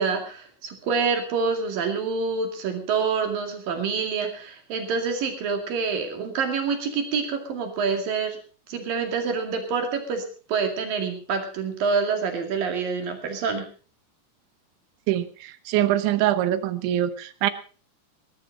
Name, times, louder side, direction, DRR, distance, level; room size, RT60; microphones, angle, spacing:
voice 1, 0.0-8.4 8.7-10.2 10.5-13.7, right 5 dB, 55° right, 5 dB, 3.7 m, -27 dB
voice 2, 15.1-17.5, right 12 dB, 85° right, 13 dB, 3.4 m, -24 dB
19.0 x 13.5 x 4.0 m, 0.38 s
omnidirectional pair, 5.3 m